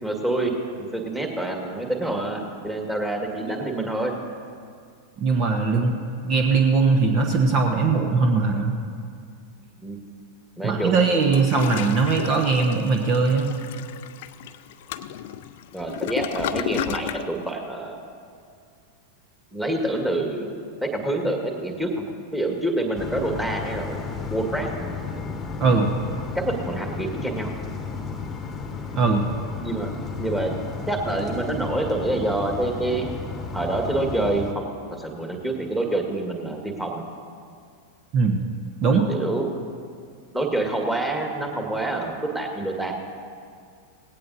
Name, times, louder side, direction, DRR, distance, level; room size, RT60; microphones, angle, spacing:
voice 1, 0.0-4.1 9.8-10.0 10.6-11.3 15.7-18.0 19.5-22.1 22.3-24.9 26.4-27.5 29.6-29.9 30.2-30.5 30.9-33.1 33.5-34.6 35.0-37.0 39.1-39.5 40.3-43.0, right 2 dB, 5° right, 1 dB, 1.9 m, -27 dB
voice 2, 5.2-6.0 6.2-8.8 10.6-13.6 25.6-25.9 28.9-29.3 38.1-38.4 38.8-39.1, right 4 dB, 35° right, 4 dB, 1.0 m, -20 dB
Toilet flush, 11.1-17.3, left 11 dB, 50° left, 0.5 m, -33 dB
sound 1, 22.9-34.5, left 5 dB, 20° left, 1.2 m, -33 dB
18.5 x 16.5 x 2.7 m, 2.3 s
figure-of-eight pair, 90°, 0 cm